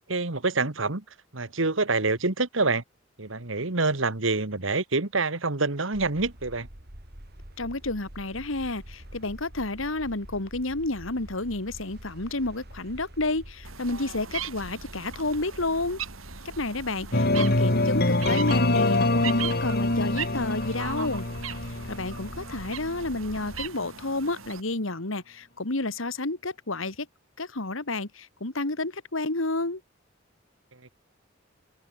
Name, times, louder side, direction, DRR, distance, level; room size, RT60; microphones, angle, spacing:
voice 1, 0.1-1.0 1.3-2.8 3.2-6.7, right 3 dB, 70° right, 2.0 m, -26 dB
sound 1, 5.9-23.7, equal, 50° right, 4.3 m, -45 dB
voice 2, 7.6-16.0 16.5-21.3 21.7-27.1 27.4-29.8, left 2 dB, 75° left, 2.3 m, -30 dB
sound 2, 13.7-24.6, right 8 dB, 85° right, 4.0 m, -39 dB
sound 3, 17.1-23.0, left 2 dB, 50° left, 2.8 m, -25 dB
head